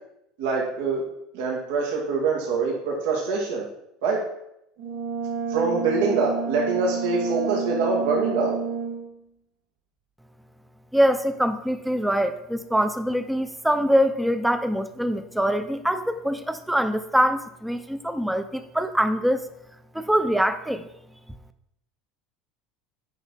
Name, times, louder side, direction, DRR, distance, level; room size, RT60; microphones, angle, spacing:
voice 1, 0.4-1.0 1.3-3.7 4.0-4.2 5.5-8.6, right 4 dB, 85° right, -2 dB, 2.1 m, -24 dB
Brass instrument, 4.8-9.1, right 5 dB, 55° right, 2.7 m, -30 dB
voice 2, 10.9-19.4 19.9-20.9, equal, 5° right, 10 dB, 0.5 m, -24 dB
9.3 x 5.5 x 4.1 m, 0.81 s
cardioid pair, 155°, 0 cm